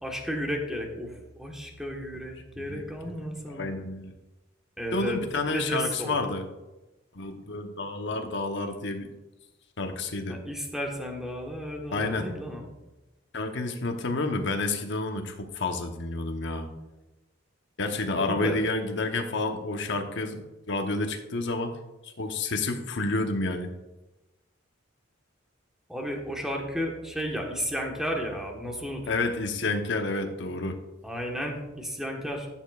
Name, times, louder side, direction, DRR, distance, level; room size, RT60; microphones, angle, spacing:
voice 1, 0.0-3.7 4.8-5.2 5.5-6.2 10.3-12.7 18.2-18.6 25.9-29.2 31.0-32.5, equal, 5° right, 1 dB, 1.3 m, -33 dB
voice 2, 2.6-3.2 3.5-4.1 4.9-6.5 7.1-9.1 9.8-10.4 11.9-12.3 13.3-16.7 17.8-21.7 22.0-23.7 29.1-30.8, left 2 dB, 65° left, 5 dB, 1.0 m, -30 dB
13.5 x 7.3 x 2.4 m, 1.0 s
head